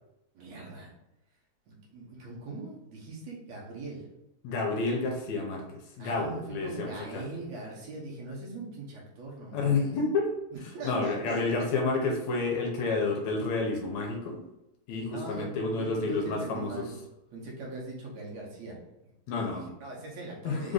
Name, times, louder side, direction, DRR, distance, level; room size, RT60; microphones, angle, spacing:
voice 1, 0.3-0.9 1.7-4.0 6.0-9.9 10.5-11.7 15.1-17.0 17.3-18.8 19.4-20.7, right 2 dB, 65° right, -3 dB, 2.1 m, -41 dB
voice 2, 4.4-5.6 6.0-7.2 9.5-10.3 10.8-14.4 14.9-16.8 19.3-19.6 20.4-20.7, left 3 dB, 75° left, 1 dB, 1.9 m, -29 dB
5.1 x 2.6 x 3.8 m, 0.94 s
omnidirectional pair, 3.5 m